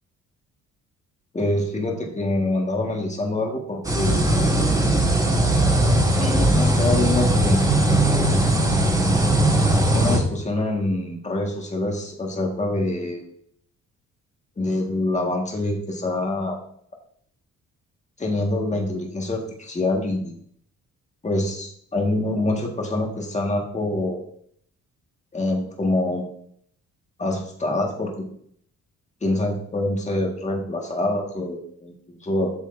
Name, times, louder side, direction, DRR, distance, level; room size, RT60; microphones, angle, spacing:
voice 1, 1.3-4.4 6.2-7.6 9.9-13.3 14.6-16.6 18.2-20.4 21.2-24.2 25.3-26.2 27.2-28.1 29.2-32.5, left 2 dB, 25° left, 1 dB, 1.8 m, -25 dB
sound 1, 3.8-10.2, right 1 dB, 10° right, 2.0 m, -19 dB
8.5 x 6.4 x 2.7 m, 0.65 s
cardioid pair, 90°, 30 cm